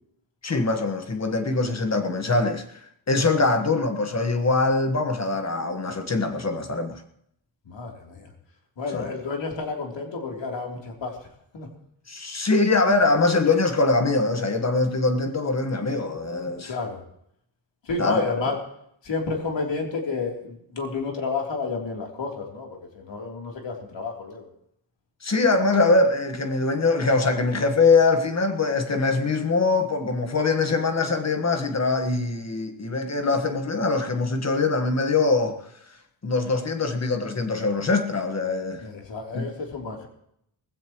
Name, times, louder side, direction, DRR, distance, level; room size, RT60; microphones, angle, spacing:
voice 1, 0.4-2.8 3.1-7.0 8.9-9.1 12.1-16.7 18.0-18.5 25.2-35.6 36.2-38.9 39.3-39.5, left 3 dB, 35° left, 1.5 m, -23 dB
voice 2, 7.7-8.3 8.8-11.2 11.5-11.7 16.7-17.0 17.8-18.6 19.0-24.5 38.8-40.1, left 4 dB, 70° left, 3.4 m, -31 dB
19.5 x 15.5 x 3.1 m
wide cardioid pair, 130°, 46 cm